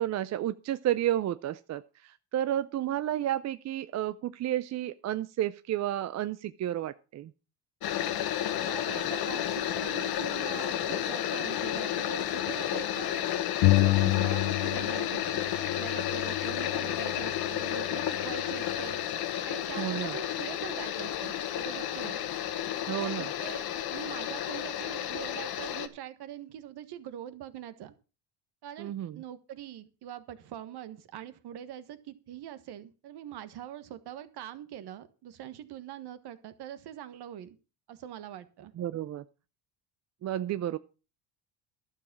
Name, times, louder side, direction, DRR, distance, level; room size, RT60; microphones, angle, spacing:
voice 1, 0.0-7.3 13.9-14.0 19.8-20.2 22.9-23.3 28.8-29.2 38.8-39.2 40.2-40.8, right 12 dB, 35° right, 13 dB, 0.5 m, -31 dB
sound 1, 7.8-25.9, left 11 dB, 50° left, 1.3 m, -32 dB
voice 2, 8.6-13.1 13.8-15.4 15.8-19.0 19.5-22.2 22.9-27.9 28.6-37.6 37.9-38.7, right 11 dB, 55° right, 12 dB, 1.5 m, -43 dB
sound 2, 13.6-15.1 15.4-17.2, left 19 dB, 75° left, 0.9 m, -28 dB
11.5 x 7.3 x 6.1 m, 0.34 s
cardioid pair, 120°, 47 cm